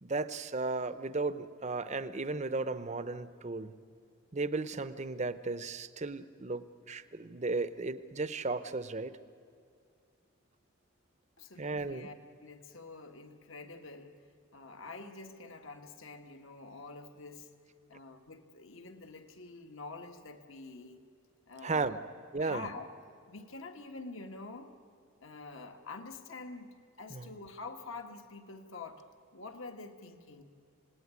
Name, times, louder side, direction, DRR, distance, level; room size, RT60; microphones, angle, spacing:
voice 1, 0.0-3.7 4.3-9.2 11.6-12.1 21.6-22.0 22.3-22.7 27.1-27.3, right 3 dB, 30° right, 13 dB, 0.7 m, -35 dB
voice 2, 11.4-14.2 14.5-17.5 17.9-21.0 21.5-22.0 22.4-22.9 23.3-24.7 25.2-29.0 29.3-30.4, left 3 dB, 65° left, 5 dB, 1.6 m, -47 dB
26.5 x 18.0 x 9.6 m, 2.3 s
head